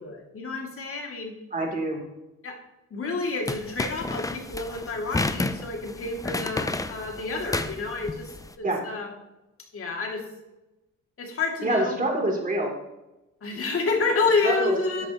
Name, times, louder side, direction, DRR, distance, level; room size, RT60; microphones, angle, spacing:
voice 1, 0.0-1.4 2.4-2.6 2.9-8.3 8.6-9.1 9.7-10.2 11.2-12.0 13.4-15.1, left 4 dB, 45° left, 1 dB, 2.6 m, -29 dB
voice 2, 1.5-2.0 8.6-8.8 11.6-12.7 14.4-14.7, right 1 dB, 25° right, 0 dB, 3.3 m, -25 dB
sound 1, 3.5-8.5, left 2 dB, 10° left, 0.6 m, -31 dB
13.0 x 8.6 x 3.1 m, 0.98 s
cardioid pair, 90°, 30 cm